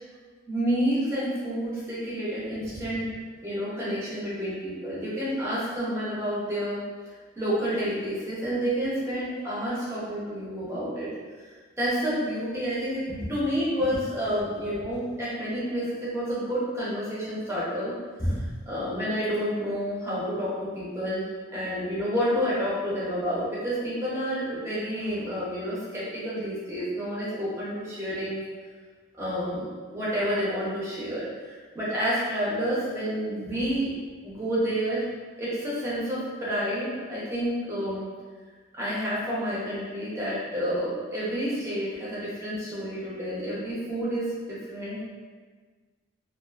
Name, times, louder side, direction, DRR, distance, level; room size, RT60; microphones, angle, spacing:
voice 1, 0.5-3.0 3.4-6.8 7.4-11.1 11.4-11.5 11.8-28.4 29.2-33.9 34.2-35.1 35.4-38.1 38.7-45.0, equal, 15° right, -9 dB, 0.7 m, -29 dB
2.5 x 2.4 x 2.3 m, 1.5 s
head